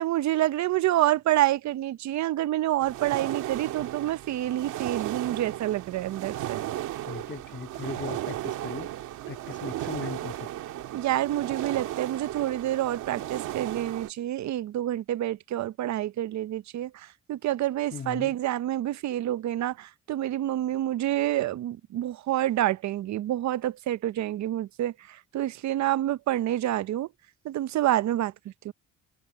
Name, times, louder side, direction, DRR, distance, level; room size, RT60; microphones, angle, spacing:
voice 1, 0.0-6.6 10.9-16.9 17.3-24.9 25.3-27.1 27.4-28.3 28.6-28.7, right 13 dB, 65° right, 0.6 m, -27 dB
sound 1, 2.8-14.1, right 13 dB, 85° right, 2.0 m, -35 dB
voice 2, 7.1-8.9 9.3-10.5 17.9-18.3, left 6 dB, 40° left, 2.2 m, -38 dB
cardioid pair, 90°, 30 cm